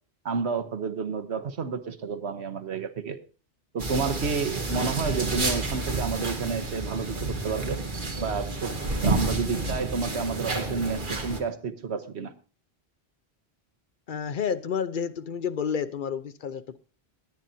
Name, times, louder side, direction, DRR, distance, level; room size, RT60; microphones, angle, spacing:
voice 1, 0.2-3.2 3.7-7.8 8.2-12.3, right 5 dB, 80° right, 9 dB, 1.3 m, -30 dB
sound 1, 3.8-11.4, right 2 dB, 50° right, 1.7 m, -30 dB
voice 2, 14.1-16.8, left 7 dB, 55° left, 11 dB, 0.8 m, -30 dB
21.0 x 9.0 x 2.8 m, 0.36 s
omnidirectional pair, 1.1 m